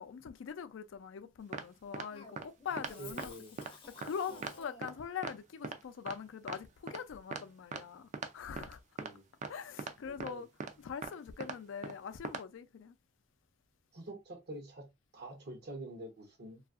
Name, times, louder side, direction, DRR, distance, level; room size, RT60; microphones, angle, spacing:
voice 1, 0.0-3.3 3.6-8.8 9.5-10.5 10.8-12.9, left 7 dB, 80° left, 0.4 m, -43 dB
sound 1, 1.5-1.7 1.9-2.1 2.4-2.5 2.8-2.9 3.2-3.3 3.6-3.7 4.0-4.1 4.4-4.5 4.8-4.9 5.2-5.3 5.6-5.8 6.1-6.2 6.5-6.6 6.9-7.0 7.3-7.4 7.7-7.8 8.1-8.3 8.6-8.7 9.0-9.1 9.4-9.5 9.8-9.9 10.2-10.3 10.6-10.7 11.0-11.1 11.4-11.6 11.8-11.9 12.2-12.4, right 5 dB, 40° right, 0.3 m, -40 dB
Cough, 2.1-5.1, left 3 dB, 25° left, 0.5 m, -53 dB
voice 2, 3.0-3.5 4.3-4.5 9.0-9.2 10.1-10.4 13.9-14.9 15.1-16.6, right 1 dB, 55° right, 0.7 m, -46 dB
2.7 x 2.3 x 2.3 m
head